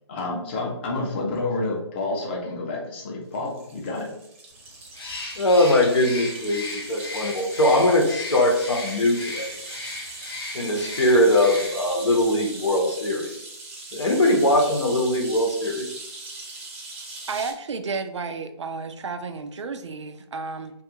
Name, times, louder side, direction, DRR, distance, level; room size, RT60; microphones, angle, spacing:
voice 1, 0.1-4.1, left 2 dB, 25° left, -1 dB, 0.5 m, -29 dB
sound 1, 3.3-17.5, right 3 dB, 25° right, 0.5 m, -40 dB
Bird, 4.9-12.0, left 2 dB, 55° left, 0.8 m, -36 dB
voice 2, 5.3-9.5 10.5-13.3 13.9-15.9, left 1 dB, 90° left, 1 dB, 0.8 m, -21 dB
voice 3, 17.3-20.7, right 4 dB, 80° right, 8 dB, 0.4 m, -32 dB
2.4 x 2.3 x 2.7 m, 0.79 s
hypercardioid pair, 155°, 15 cm